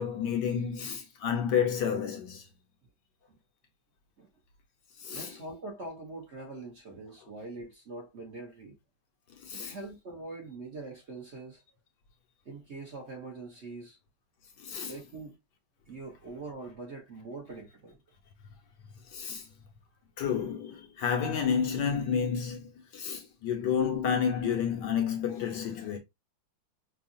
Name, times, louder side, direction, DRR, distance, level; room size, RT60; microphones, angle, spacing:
voice 1, 0.0-2.5 5.0-5.4 9.4-9.8 14.6-15.0 19.1-19.5 20.2-26.0, left 7 dB, 65° left, 1.3 m, -30 dB
voice 2, 5.1-8.8 9.5-11.6 12.4-14.0 14.8-15.4 15.9-18.0 19.2-19.3, right 3 dB, 45° right, 1.0 m, -43 dB
5.5 x 2.3 x 2.6 m
omnidirectional pair, 2.2 m